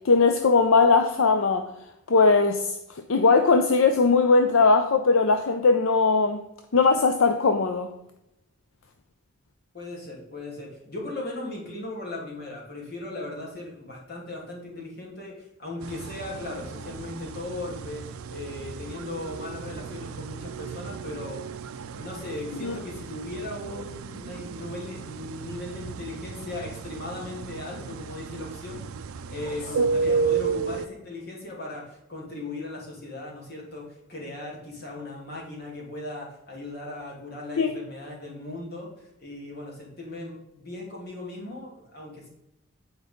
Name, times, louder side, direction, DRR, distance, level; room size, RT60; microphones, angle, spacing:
voice 1, 0.0-1.7 2.1-2.7 3.1-6.4 6.7-7.9 22.6-22.8 29.8-29.9 37.6-37.7, left 4 dB, 70° left, 7 dB, 0.6 m, -20 dB
voice 2, 9.7-15.3 15.6-18.0 18.3-21.4 21.9-28.8 29.3-38.9 39.2-42.3, left 2 dB, 45° left, -3 dB, 2.8 m, -37 dB
sound 1, 15.8-30.9, right 5 dB, 80° right, 0.5 m, -33 dB
8.8 x 4.8 x 5.2 m, 0.85 s
head